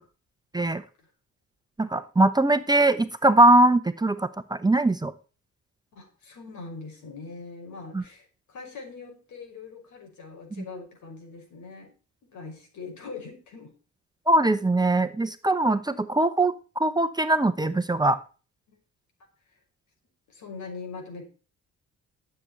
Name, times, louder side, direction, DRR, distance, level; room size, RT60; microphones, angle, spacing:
voice 1, 1.8-5.1 7.9-8.0 10.6-10.7 14.3-18.2, right 2 dB, 15° right, 10 dB, 0.9 m, -21 dB
voice 2, 5.9-11.9 12.3-13.7 20.3-21.2, left 4 dB, 70° left, 2 dB, 6.1 m, -42 dB
13.0 x 7.9 x 4.3 m, 0.34 s
cardioid pair, 90°, 30 cm